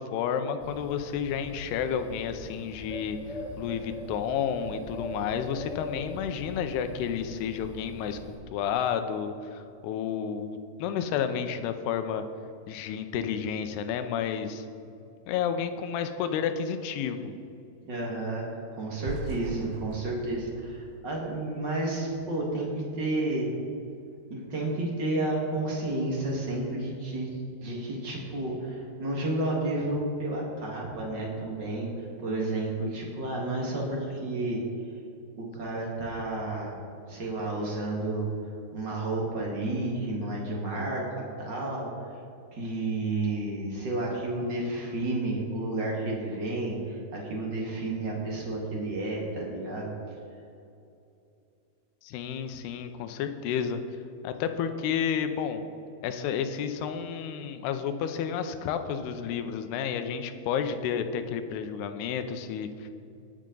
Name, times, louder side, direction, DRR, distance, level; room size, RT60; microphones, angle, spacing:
voice 1, 0.0-3.2 3.6-8.2 8.5-12.2 12.7-14.7 15.3-17.3 52.0-53.8 54.2-55.6 56.0-62.9, left 7 dB, 80° left, 8 dB, 2.7 m, -31 dB
Bird, 0.6-8.3, left 1 dB, ahead, 1.5 m, -42 dB
voice 2, 17.9-18.4 18.7-23.5 24.3-27.3 27.6-31.9 32.2-34.6 35.4-36.7 37.1-38.3 38.7-41.9 42.5-49.9, right 2 dB, 45° right, -2 dB, 1.4 m, -31 dB
sound 1, 19.1-22.1, right 3 dB, 85° right, 2.6 m, -40 dB
19.5 x 7.5 x 3.9 m, 2.6 s
omnidirectional pair, 4.8 m